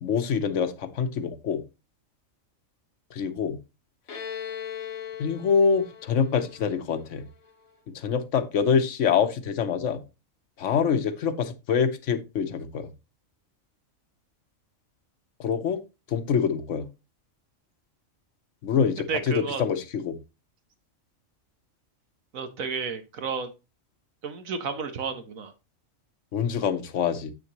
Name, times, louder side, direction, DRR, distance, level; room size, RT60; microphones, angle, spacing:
voice 1, 0.0-1.6 3.1-3.6 5.2-7.2 7.9-10.0 10.6-12.9 15.4-15.8 16.1-16.9 18.6-20.2 26.3-27.3, left 6 dB, 65° left, 1.1 m, -25 dB
Bowed string instrument, 4.1-7.6, left 8 dB, 90° left, 1.5 m, -39 dB
voice 2, 19.1-19.6 22.3-23.5 24.2-25.5, right 5 dB, 80° right, 1.5 m, -32 dB
8.2 x 6.5 x 2.9 m
omnidirectional pair, 1.4 m